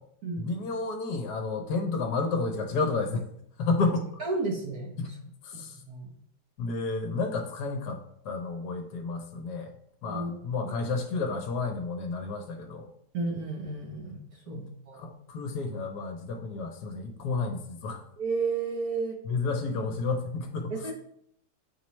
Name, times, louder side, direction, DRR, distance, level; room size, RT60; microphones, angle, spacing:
voice 1, 0.4-3.2 3.6-4.0 5.0-5.1 5.4-5.8 6.6-8.0 8.2-9.7 10.0-12.9 14.5-18.0 19.2-20.9, left 3 dB, 70° left, 3 dB, 1.2 m, -31 dB
voice 2, 4.2-4.9 5.5-6.1 10.0-10.3 13.1-14.2 14.5-14.6 14.9-15.1 18.2-19.2 20.7-20.9, right 3 dB, 60° right, 0 dB, 1.5 m, -32 dB
7.4 x 4.2 x 3.1 m, 0.68 s
omnidirectional pair, 1.9 m